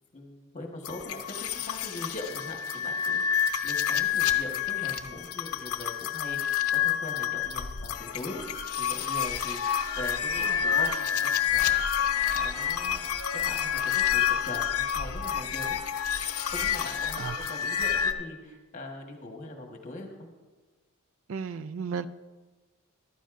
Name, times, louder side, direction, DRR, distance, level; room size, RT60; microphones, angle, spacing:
voice 1, 0.1-8.4 8.8-11.7 12.3-13.0 13.4-15.8 16.5-20.3, left 2 dB, 35° left, 2 dB, 1.4 m, -41 dB
sound 1, 0.8-18.1, left 9 dB, 75° left, 0.7 m, -28 dB
sound 2, 9.0-14.5, right 1 dB, 45° right, 3.4 m, -47 dB
voice 2, 17.2-17.5 21.3-22.1, right 6 dB, 60° right, 14 dB, 0.4 m, -34 dB
14.5 x 12.5 x 2.5 m, 1.3 s
head